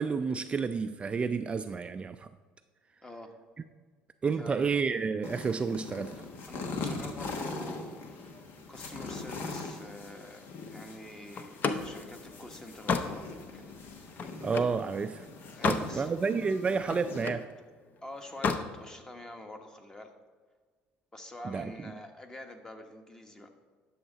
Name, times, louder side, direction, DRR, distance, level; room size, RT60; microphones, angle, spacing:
voice 1, 0.0-2.3 4.2-6.1 14.4-15.3 15.6-17.5 21.4-21.7, right 5 dB, 30° right, 9 dB, 0.3 m, -30 dB
voice 2, 3.0-3.3 4.4-4.7 6.5-8.0 8.7-10.4 10.7-13.6 15.6-16.1 18.0-20.1 21.1-23.5, left 1 dB, 15° left, 5 dB, 1.2 m, -46 dB
sound 1, 5.2-17.2, left 3 dB, 60° left, 1.3 m, -41 dB
Slam, 11.3-14.8 15.3-15.9 16.3-17.5 18.3-18.7, left 5 dB, 45° left, 0.7 m, -32 dB
11.0 x 6.5 x 4.0 m, 1.5 s
supercardioid pair, 90°, 4 cm